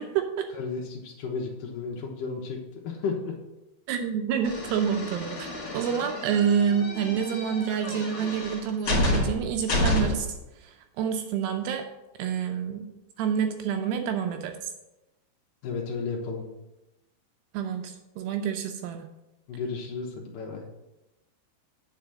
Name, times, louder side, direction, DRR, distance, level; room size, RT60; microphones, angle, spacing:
voice 1, 0.0-0.5 3.9-5.5 5.7-10.3 10.6-11.9 12.2-12.9 13.2-14.7 17.5-19.1, right 7 dB, 85° right, 5 dB, 2.4 m, -28 dB
voice 2, 0.5-3.3 15.6-16.4 19.5-20.6, left 4 dB, 75° left, 1 dB, 1.9 m, -33 dB
sound 1, 4.4-10.4, left 1 dB, 45° left, 2.3 m, -30 dB
9.5 x 5.1 x 7.6 m, 0.98 s
omnidirectional pair, 5.5 m